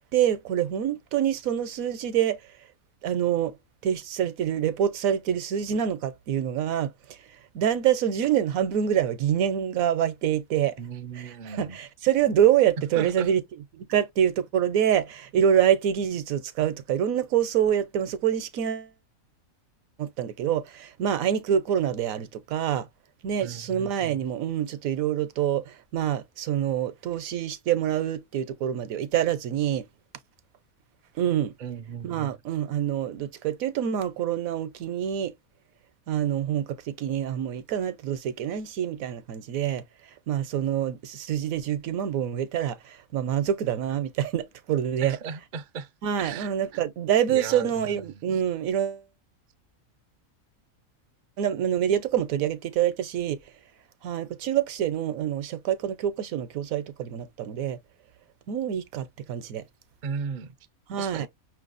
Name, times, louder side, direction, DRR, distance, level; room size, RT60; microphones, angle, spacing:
voice 1, 0.1-2.4 3.0-7.2 7.5-10.8 11.2-13.4 13.7-18.9 20.0-22.9 23.2-29.8 31.2-31.5 32.0-35.3 36.1-39.8 40.3-45.2 46.0-49.0 51.4-53.4 54.0-57.8 58.5-59.6 60.9-61.3, right 10 dB, 75° right, 1.1 m, -26 dB
voice 2, 10.8-11.8 12.9-13.3 23.4-24.3 31.6-32.4 45.0-45.9 46.2-46.8 47.3-48.4 60.0-60.5 61.0-61.3, right 6 dB, 55° right, 0.5 m, -36 dB
5.8 x 3.1 x 2.4 m
omnidirectional pair, 1.5 m